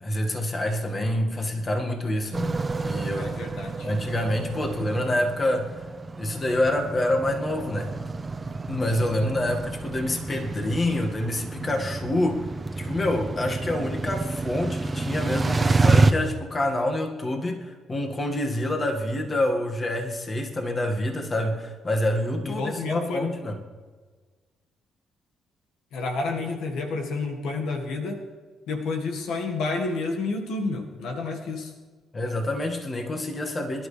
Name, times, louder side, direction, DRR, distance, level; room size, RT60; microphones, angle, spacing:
voice 1, 0.0-2.6 2.8-3.4 3.8-5.7 6.2-7.9 8.7-12.5 12.8-23.6 32.1-33.9, left 1 dB, 30° left, 3 dB, 2.0 m, -27 dB
sound 1, 2.3-16.1, right 3 dB, 25° right, 0.9 m, -28 dB
voice 2, 3.2-3.9 22.4-23.3 25.9-28.2 28.7-31.7, left 3 dB, 80° left, 2 dB, 1.7 m, -30 dB
24.0 x 11.5 x 3.4 m, 1.4 s
cardioid pair, 90°, 0 cm